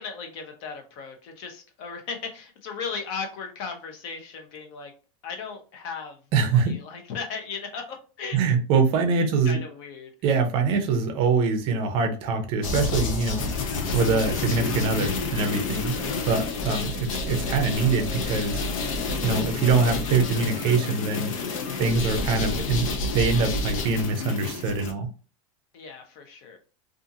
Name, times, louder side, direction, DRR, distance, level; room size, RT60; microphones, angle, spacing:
voice 1, 0.0-4.9 5.2-6.2 6.4-8.4 9.2-10.1 15.9-16.3 25.7-26.6, left 5 dB, 45° left, 4 dB, 0.7 m, -37 dB
voice 2, 6.3-6.8 8.3-9.6 10.2-13.5 13.9-16.0 16.2-18.6 19.2-21.3 21.8-22.9 23.1-25.1, right 4 dB, 30° right, 6 dB, 0.5 m, -24 dB
sound 1, 12.6-24.9, left 3 dB, 85° left, 0.7 m, -29 dB
2.6 x 2.5 x 2.6 m, 0.36 s
supercardioid pair, 165°, 17 cm